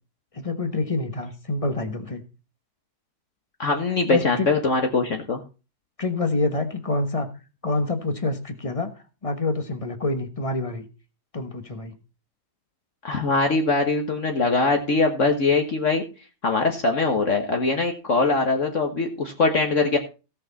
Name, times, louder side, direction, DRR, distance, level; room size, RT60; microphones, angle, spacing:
voice 1, 0.3-2.2 4.1-4.5 6.0-7.3 7.6-8.9 9.2-10.9 11.3-11.9, left 2 dB, 20° left, 8 dB, 1.2 m, -27 dB
voice 2, 3.6-5.4 13.0-16.0 16.4-20.0, left 3 dB, 50° left, 3 dB, 1.6 m, -22 dB
17.0 x 6.3 x 4.1 m, 0.32 s
omnidirectional pair, 1.8 m